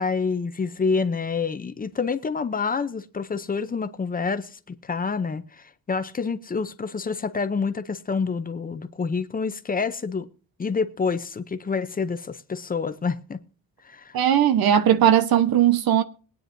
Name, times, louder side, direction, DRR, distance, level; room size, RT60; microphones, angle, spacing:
voice 1, 0.0-10.3 10.6-13.4 13.8-14.2, left 5 dB, 25° left, 0.6 m, -27 dB
voice 2, 14.1-16.0, right 10 dB, 90° right, 1.1 m, -18 dB
22.0 x 9.4 x 2.6 m
wide cardioid pair, 180°, 35 cm